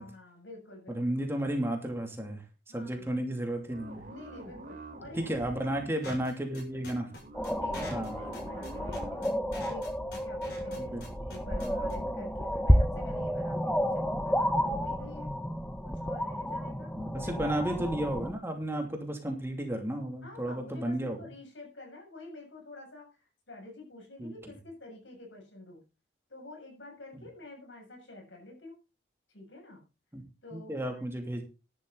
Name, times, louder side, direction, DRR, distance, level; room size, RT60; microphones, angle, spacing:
voice 1, 0.0-1.0 2.7-3.1 4.1-5.2 5.7-5.8 7.6-9.2 9.6-15.3 15.8-17.5 20.2-25.8 26.3-28.8 29.3-29.8 30.4-31.4, left 2 dB, 80° left, 2 dB, 7.2 m, -48 dB
voice 2, 0.9-2.4 2.7-4.0 5.2-7.1 7.9-8.1 10.8-11.3 16.9-21.2 24.2-24.3 30.1-30.2 30.5-31.4, right 1 dB, 15° right, 3 dB, 2.7 m, -33 dB
sound 1, 3.7-6.1 7.1-9.3 10.4-12.2, right 1 dB, 40° right, 4.1 m, -46 dB
sound 2, 6.0-11.9, left 1 dB, 60° left, 6.8 m, -44 dB
sound 3, 7.3-18.3, equal, 5° left, 0.9 m, -31 dB
13.0 x 12.0 x 4.0 m, 0.31 s
head